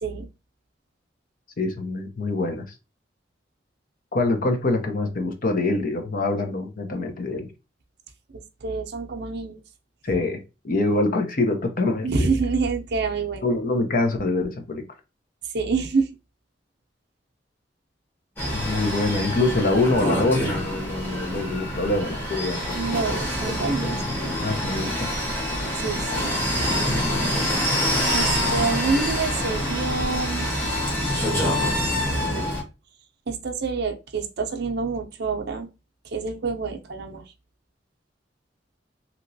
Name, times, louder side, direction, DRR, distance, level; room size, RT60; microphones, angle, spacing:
voice 1, 1.6-2.7 4.1-7.5 10.0-12.4 13.4-14.8 18.5-23.2 23.8-23.9 24.2-25.1, left 2 dB, 50° left, 0.6 m, -25 dB
voice 2, 8.6-9.6 10.1-10.2 12.0-13.4 15.4-16.1 22.7-24.0 25.8-26.4 28.1-30.5 32.1-32.6 33.3-35.7 36.0-37.2, right 4 dB, 65° right, 0.6 m, -27 dB
sound 1, 18.4-32.6, equal, 10° left, 1.2 m, -26 dB
3.0 x 2.8 x 2.6 m
head